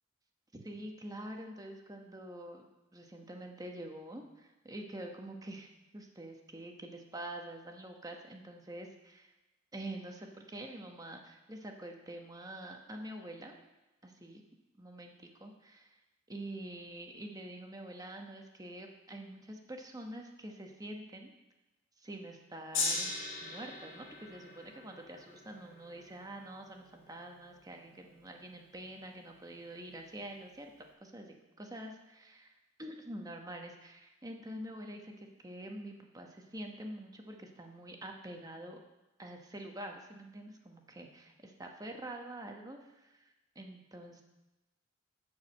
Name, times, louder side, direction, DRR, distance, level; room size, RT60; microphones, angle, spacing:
voice 1, 0.5-2.6 2.9-9.3 9.7-13.5 14.0-14.4 14.8-15.9 16.3-21.3 22.0-23.1 23.4-30.7 31.0-32.5 32.8-38.8 39.2-42.8 43.1-44.2, right 1 dB, 20° right, 3 dB, 1.0 m, -46 dB
Gong, 22.7-29.1 29.9-30.0, left 3 dB, 85° left, 2.1 m, -40 dB
11.0 x 4.8 x 7.3 m, 1.0 s
head